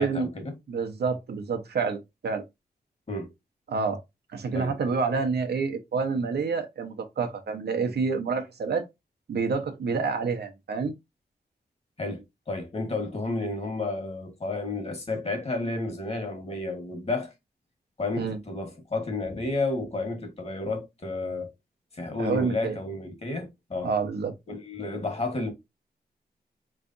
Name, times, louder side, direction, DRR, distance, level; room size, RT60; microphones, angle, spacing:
voice 1, 0.0-0.5 3.1-3.3 4.5-4.8 12.0-17.3 18.0-21.5 21.9-23.9 24.5-25.5, left 2 dB, 40° left, 1.3 m, -31 dB
voice 2, 0.7-2.4 3.7-4.0 4.3-8.9 9.3-10.9 18.2-18.4 22.2-22.8 23.8-24.3, right 5 dB, 90° right, 0.9 m, -28 dB
4.7 x 3.2 x 2.5 m
wide cardioid pair, 145°, 16 cm